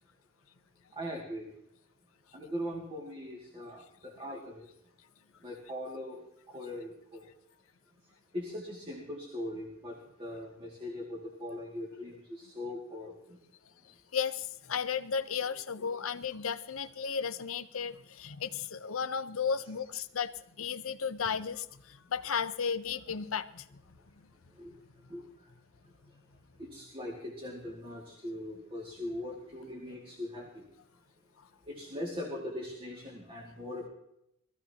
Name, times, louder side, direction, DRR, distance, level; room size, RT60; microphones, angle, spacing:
voice 1, 0.9-1.5 2.3-4.7 5.4-6.2 6.5-7.3 8.3-13.4 15.8-15.9 24.6-24.7 25.1-25.2 26.6-30.6 31.7-33.9, left 1 dB, 25° right, -2 dB, 2.3 m, -40 dB
voice 2, 14.1-23.8, left 6 dB, 70° left, 12 dB, 0.8 m, -34 dB
21.5 x 14.5 x 2.9 m, 0.79 s
head